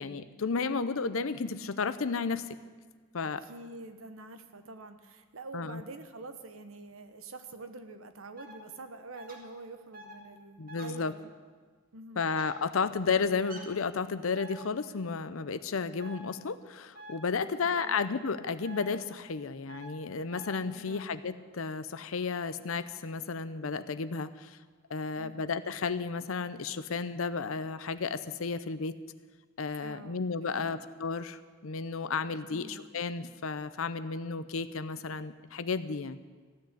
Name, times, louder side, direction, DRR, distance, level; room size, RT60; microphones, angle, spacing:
voice 1, 0.0-2.5 3.1-3.5 5.5-5.8 10.6-11.1 12.2-24.6 24.9-29.0 29.6-36.2, left 5 dB, 80° left, 13 dB, 0.6 m, -33 dB
voice 2, 3.4-11.3 11.9-12.3 17.6-18.0 20.8-21.1 25.2-25.5 29.8-30.2 30.5-30.8 32.5-32.9, right 2 dB, 80° right, 8 dB, 1.0 m, -46 dB
sound 1, 8.4-8.5 9.2-9.4 9.9-10.1 10.7-10.9 12.3-12.5 13.4-13.6 14.4-14.6 16.0-16.2 16.9-17.1 17.8-18.0 18.6-18.9 19.7-19.9 20.3-20.5, right 1 dB, 40° right, 2.0 m, -46 dB
15.0 x 6.7 x 9.6 m, 1.5 s
head